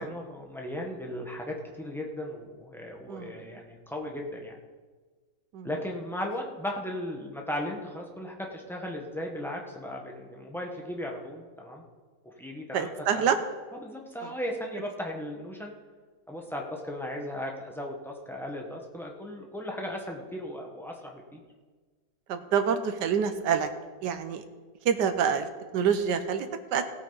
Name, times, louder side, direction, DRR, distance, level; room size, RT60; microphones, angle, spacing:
voice 1, 0.0-4.6 5.6-11.8 12.4-13.3 13.7-15.7 16.3-21.4, left 1 dB, ahead, 0 dB, 1.1 m, -36 dB
voice 2, 12.7-13.4 22.3-23.7 24.0-24.4 24.8-25.5 25.7-26.8, right 7 dB, 75° right, 9 dB, 1.4 m, -26 dB
17.5 x 8.6 x 4.0 m, 1.4 s
omnidirectional pair, 1.9 m